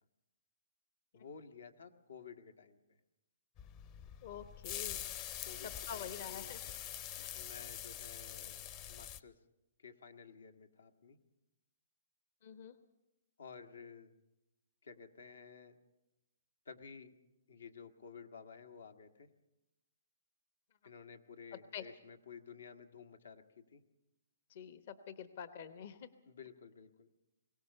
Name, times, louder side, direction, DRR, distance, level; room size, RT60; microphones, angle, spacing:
voice 1, 1.1-2.8 5.4-6.5 7.3-9.4 9.8-11.2 13.4-14.1 14.8-15.8 16.6-17.2 17.5-19.3 20.8-23.8 26.2-27.1, left 6 dB, 85° left, 8 dB, 1.6 m, -53 dB
sound 1, 3.6-9.2, left 11 dB, 30° left, 0.7 m, -45 dB
voice 2, 4.2-5.1 5.6-6.6 7.2-7.4 12.4-12.7 21.5-21.9 24.5-26.1, left 8 dB, 50° left, 11 dB, 0.9 m, -47 dB
22.0 x 17.5 x 6.7 m, 0.94 s
hypercardioid pair, 150°, 0 cm